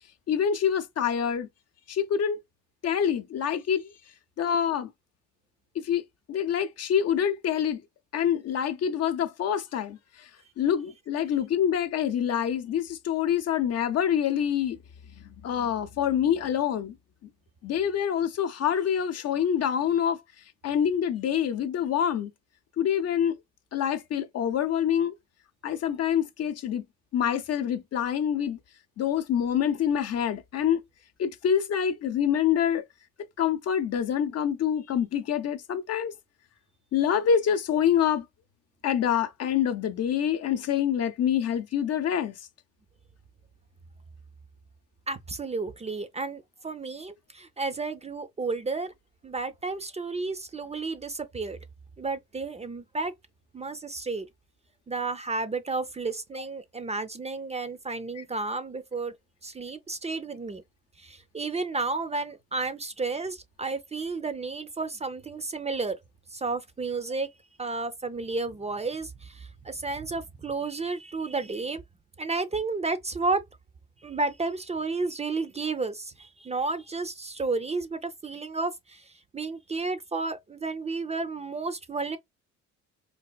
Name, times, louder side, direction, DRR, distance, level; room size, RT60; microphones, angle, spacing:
voice 1, 0.3-1.5 1.9-2.4 2.8-3.9 4.4-4.9 5.8-6.0 6.3-7.8 8.1-10.0 10.6-14.8 15.2-17.0 17.6-20.2 20.6-22.3 22.8-23.3 23.7-25.1 25.6-26.8 27.1-28.6 29.0-30.8 31.2-32.8 33.4-36.1 36.9-38.3 38.8-42.3 58.2-58.3, left 9 dB, 55° left, 0.6 m, -26 dB
voice 2, 45.1-48.9 49.2-51.6 52.0-53.1 53.5-54.3 54.9-59.1 59.4-60.6 61.0-66.0 66.3-67.3 67.6-71.8 72.2-73.4 74.0-82.2, right 3 dB, 20° right, 0.4 m, -32 dB
4.0 x 2.5 x 2.2 m
cardioid pair, 90°, 30 cm